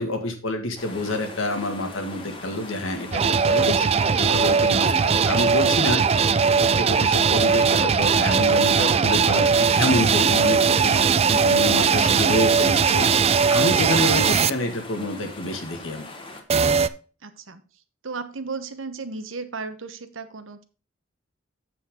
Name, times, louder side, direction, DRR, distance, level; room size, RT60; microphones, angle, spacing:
voice 1, 0.0-3.9 4.2-6.0 6.6-11.0 11.3-13.1 13.5-16.1, left 1 dB, 80° left, 5 dB, 1.9 m, -27 dB
sound 1, 0.8-16.4, left 2 dB, 25° left, 1.5 m, -40 dB
sound 2, 3.1-14.5 16.5-16.9, right 6 dB, 30° right, 0.4 m, -19 dB
voice 2, 17.2-17.6 18.0-20.6, right 4 dB, 80° right, 10 dB, 1.1 m, -35 dB
7.9 x 7.1 x 3.7 m, 0.37 s
head